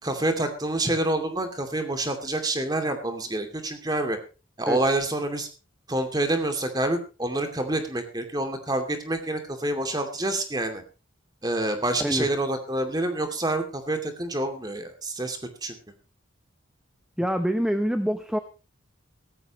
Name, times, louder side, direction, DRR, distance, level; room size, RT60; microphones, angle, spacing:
voice 1, 0.0-4.2 4.6-5.5 5.9-10.8 11.4-15.7, right 1 dB, 20° right, 6 dB, 2.5 m, -27 dB
voice 2, 17.2-18.4, equal, 5° right, 9 dB, 0.8 m, -25 dB
17.0 x 14.5 x 3.1 m, 0.32 s
head